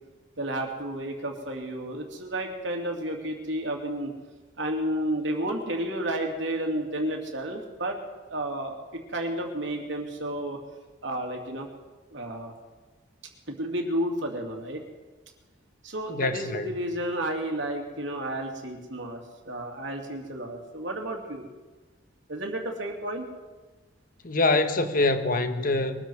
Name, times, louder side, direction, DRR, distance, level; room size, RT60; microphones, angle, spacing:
voice 1, 0.4-4.1 4.6-8.0 8.3-10.6 11.0-11.7 12.1-12.5 13.5-14.8 15.8-21.5 22.3-23.3, right 1 dB, 75° right, 2.8 m, -31 dB
voice 2, 16.1-16.7 24.2-26.0, left 2 dB, 50° left, 1.2 m, -25 dB
22.5 x 13.5 x 4.7 m
head